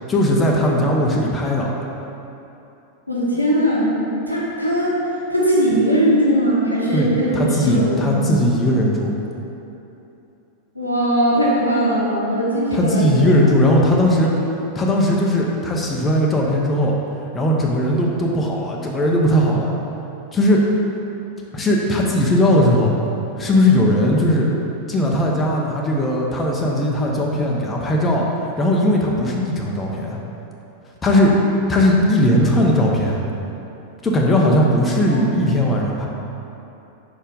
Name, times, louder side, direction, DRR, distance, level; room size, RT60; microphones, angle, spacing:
voice 1, 0.1-1.7 6.9-9.1 12.7-14.3 14.7-16.9 17.3-19.7 20.3-20.6 21.5-22.9 23.4-24.5 24.9-28.2 28.6-30.2 31.0-31.4 31.7-33.2 34.0-36.1, left 1 dB, 15° left, -2 dB, 0.8 m, -18 dB
voice 2, 3.1-4.0 4.3-5.0 5.3-8.4 10.7-13.3 31.0-31.5 35.1-35.3, right 1 dB, 90° left, -6 dB, 1.2 m, -20 dB
5.0 x 4.4 x 5.1 m, 2.9 s
figure-of-eight pair, 90°, 0 cm